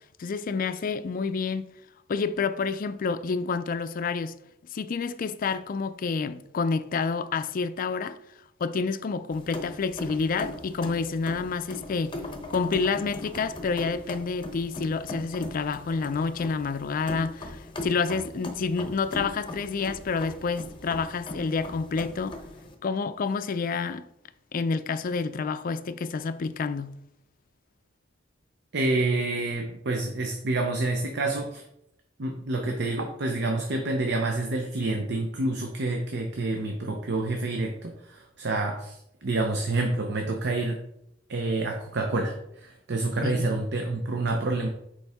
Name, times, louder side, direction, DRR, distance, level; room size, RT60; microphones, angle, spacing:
voice 1, 0.2-1.7 2.1-4.3 4.7-8.2 8.6-12.2 12.5-22.4 22.8-24.0 24.5-26.9 43.2-43.5, left 4 dB, 45° left, 0.4 m, -29 dB
sound 1, 9.3-22.7, left 1 dB, 25° left, 0.8 m, -39 dB
voice 2, 28.7-31.6 32.2-40.8 41.3-44.7, right 2 dB, 60° right, 0.7 m, -28 dB
6.9 x 4.7 x 3.5 m
head